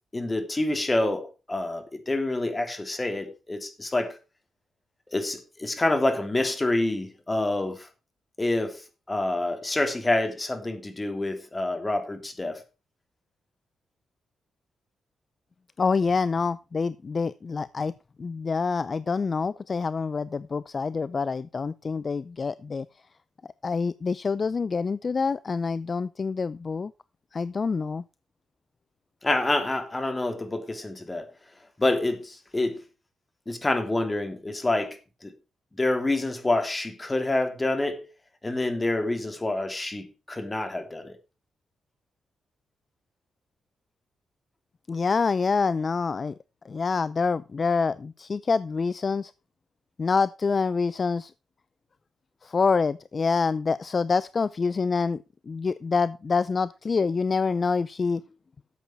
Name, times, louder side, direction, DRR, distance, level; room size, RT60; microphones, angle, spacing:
voice 1, 0.1-4.2 5.1-7.9 8.4-8.8 9.1-12.6 29.2-31.3 31.8-32.8 33.5-35.3 35.8-38.0 38.4-41.2, left 2 dB, 25° left, 3.2 m, -27 dB
voice 2, 15.8-17.9 18.2-22.9 23.6-26.9 27.3-28.0 44.9-46.3 46.7-49.3 50.0-51.3 52.4-55.2 55.5-58.2, left 4 dB, 45° left, 0.5 m, -26 dB
12.5 x 8.2 x 4.6 m
supercardioid pair, 50°, 0 cm